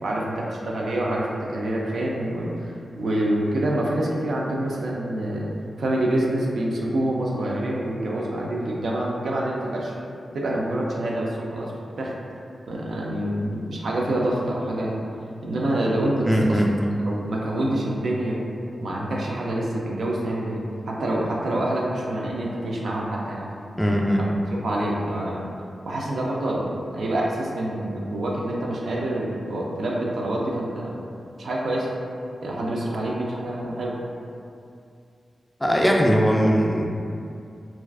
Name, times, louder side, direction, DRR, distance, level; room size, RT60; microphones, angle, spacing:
voice 1, 0.0-5.5 5.8-9.9 10.3-11.7 12.0-12.1 12.7-14.9 15.4-16.6 17.0-18.4 18.8-20.6 20.9-23.5 24.2-25.4 25.8-30.9 31.4-31.9 32.4-33.9, right 1 dB, 85° right, -3 dB, 0.3 m, -26 dB
voice 2, 16.2-16.7 23.8-24.2 35.6-36.9, equal, 10° left, -1 dB, 0.3 m, -20 dB
2.3 x 2.2 x 2.3 m, 2.5 s
cardioid pair, 50°, 0 cm